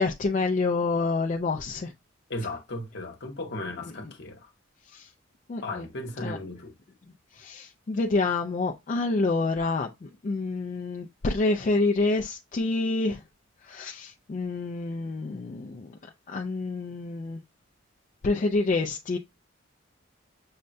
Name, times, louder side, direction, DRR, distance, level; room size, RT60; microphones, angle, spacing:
voice 1, 0.0-1.9 4.9-5.0 5.5-5.8 6.2-6.4 7.4-13.2 13.7-15.9 16.3-17.4 18.2-19.2, left 3 dB, 40° left, 0.3 m, -27 dB
voice 2, 2.3-4.5 5.6-6.7, left 2 dB, 60° left, 1.0 m, -36 dB
6.4 x 2.2 x 2.5 m
head